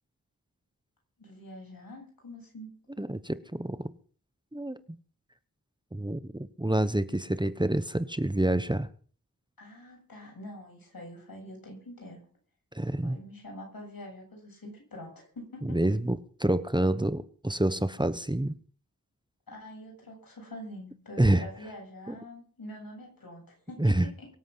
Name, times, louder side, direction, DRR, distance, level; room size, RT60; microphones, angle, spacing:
voice 1, 1.2-2.7 9.6-12.2 13.0-15.8 19.5-24.3, left 1 dB, 85° left, 0 dB, 8.0 m, -45 dB
voice 2, 3.0-3.9 4.5-4.8 5.9-8.9 12.7-13.2 15.6-18.6 21.2-21.5 22.1-22.2 23.8-24.1, right 1 dB, 15° right, 13 dB, 1.1 m, -27 dB
23.5 x 8.2 x 5.9 m, 0.43 s
cardioid pair, 40°, 34 cm